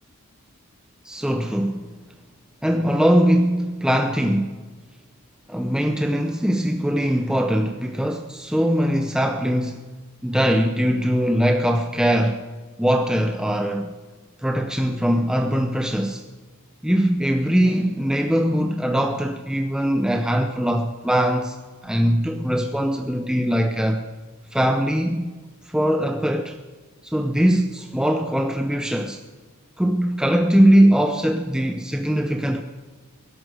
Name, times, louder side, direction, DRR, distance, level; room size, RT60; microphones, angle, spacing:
voice 1, 1.0-1.9 2.6-4.6 5.5-9.9 10.2-12.4 12.8-13.9 14.4-16.2 16.8-21.6 21.8-24.0 24.5-25.3 25.7-26.6 27.0-29.2 29.8-32.6, equal, 5° right, 0.7 m, -21 dB
21.0 x 11.5 x 4.8 m
head